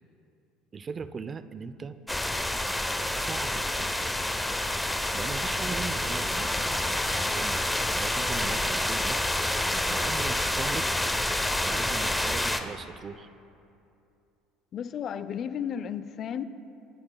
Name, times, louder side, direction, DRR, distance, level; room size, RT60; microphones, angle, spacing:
voice 1, 0.7-2.0 3.2-4.0 5.1-7.6 7.9-9.2 9.7-10.9 11.6-13.3, right 5 dB, 35° right, 13 dB, 0.5 m, -39 dB
sound 1, 2.1-12.6, left 1 dB, 5° left, 0.8 m, -28 dB
voice 2, 14.7-16.4, left 8 dB, 45° left, 14 dB, 0.5 m, -33 dB
25.5 x 11.5 x 2.3 m, 2.7 s
hypercardioid pair, 70°, 0 cm